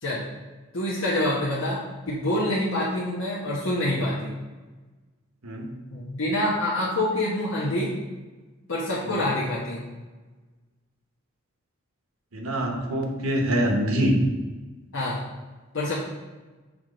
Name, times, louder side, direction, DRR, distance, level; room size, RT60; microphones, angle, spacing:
voice 1, 0.7-4.3 5.9-7.9 8.7-9.8 14.9-15.2 15.7-16.0, left 1 dB, 70° left, -7 dB, 1.0 m, -26 dB
voice 2, 12.3-14.2, equal, 85° right, 2 dB, 1.0 m, -25 dB
6.1 x 3.5 x 5.0 m, 1.2 s
head